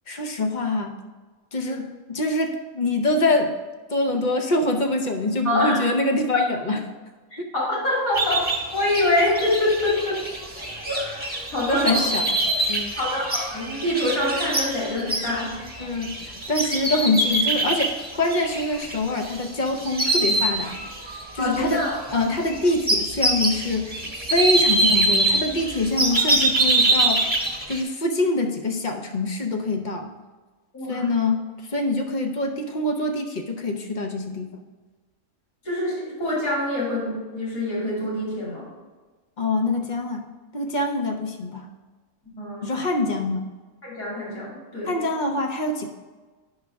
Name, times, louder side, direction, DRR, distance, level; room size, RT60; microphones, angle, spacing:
voice 1, 0.1-1.0 1.5-3.6 3.9-6.8 7.4-7.5 11.7-12.4 12.7-13.0 15.8-20.8 21.3-21.8 22.1-24.0 24.3-27.2 27.7-30.1 30.9-34.6 39.4-40.2 40.5-41.7 42.6-43.5 44.9-45.9, left 2 dB, 40° left, 4 dB, 0.7 m, -25 dB
voice 2, 5.4-5.8 7.3-10.2 10.8-12.1 13.0-15.5 21.4-22.0 30.7-31.1 35.6-38.7 42.3-42.7 43.8-44.9, left 1 dB, 65° left, -6 dB, 3.2 m, -25 dB
sound 1, 8.1-19.5 19.8-21.2 21.5-27.8, right 2 dB, 5° right, 1.0 m, -24 dB
9.7 x 6.3 x 3.4 m, 1.3 s
omnidirectional pair, 1.6 m